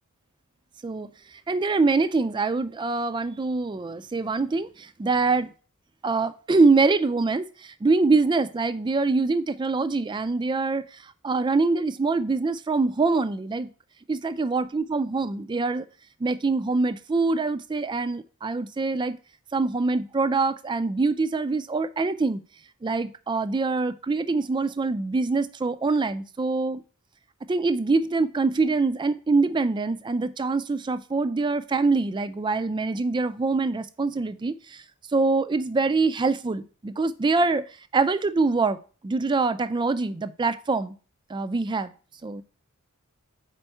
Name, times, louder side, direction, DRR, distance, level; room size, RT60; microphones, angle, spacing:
voice 1, 0.8-5.5 6.0-13.7 14.1-15.9 16.2-19.2 19.5-22.4 22.8-26.8 27.5-34.8 35.1-37.6 37.9-38.8 39.0-40.9 41.3-41.9 42.2-42.4, right 3 dB, 20° right, 0.3 m, -24 dB
4.5 x 4.4 x 5.4 m
head